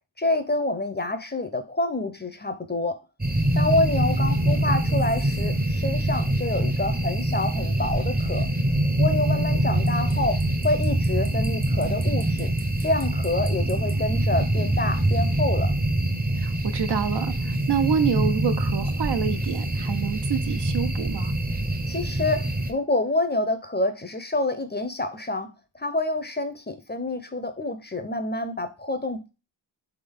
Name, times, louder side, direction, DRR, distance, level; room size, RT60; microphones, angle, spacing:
voice 1, 0.2-3.0 3.6-8.5 9.0-10.4 10.6-12.5 12.8-15.7 21.9-22.4 22.7-25.5 25.8-29.3, left 2 dB, 20° left, 0.6 m, -27 dB
sound 1, 3.2-22.7, right 1 dB, 20° right, 0.7 m, -24 dB
voice 2, 16.4-21.3, right 7 dB, 60° right, 0.6 m, -27 dB
3.7 x 3.6 x 3.6 m
cardioid pair, 50°, 47 cm